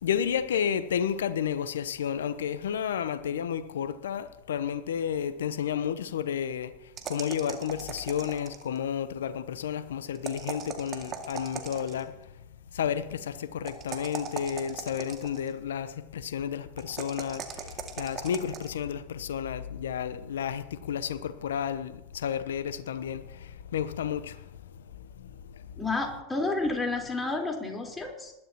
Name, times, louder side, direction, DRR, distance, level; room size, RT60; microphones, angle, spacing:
voice 1, 0.0-12.3 12.7-25.8, left 8 dB, 75° left, 0.8 m, -32 dB
sound 1, 7.0-8.8 10.1-12.1 13.6-15.5 16.8-18.7, right 7 dB, 35° right, 2.2 m, -39 dB
voice 2, 25.8-28.3, left 3 dB, 15° left, 4.0 m, -30 dB
20.0 x 12.0 x 2.9 m
hypercardioid pair, 90°, 0 cm